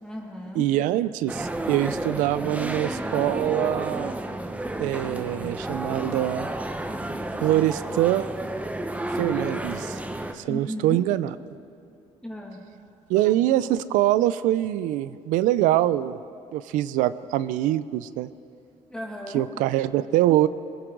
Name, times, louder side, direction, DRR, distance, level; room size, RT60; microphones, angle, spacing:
voice 1, 0.0-0.7 10.5-11.0 12.2-12.6 18.9-19.5, equal, 5° left, -1 dB, 2.3 m, -35 dB
voice 2, 0.6-4.2 4.8-6.5 7.4-8.3 9.1-10.0 10.3-11.3 13.1-16.2 16.5-18.3 19.3-20.5, right 14 dB, 90° right, 16 dB, 0.5 m, -24 dB
sound 1, 1.3-10.3, right 1 dB, 10° right, 0.9 m, -31 dB
22.0 x 16.0 x 3.9 m, 2.5 s
cardioid pair, 85°, 13 cm